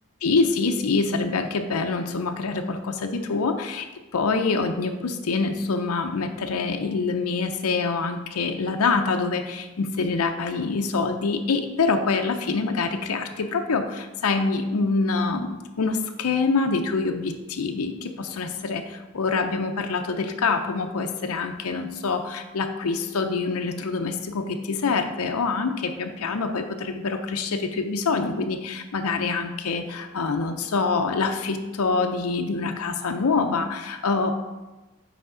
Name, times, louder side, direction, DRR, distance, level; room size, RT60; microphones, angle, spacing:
voice 1, 0.2-3.9 4.1-34.3, left 4 dB, 75° left, 5 dB, 0.5 m, -25 dB
7.9 x 5.0 x 3.8 m, 1.1 s
head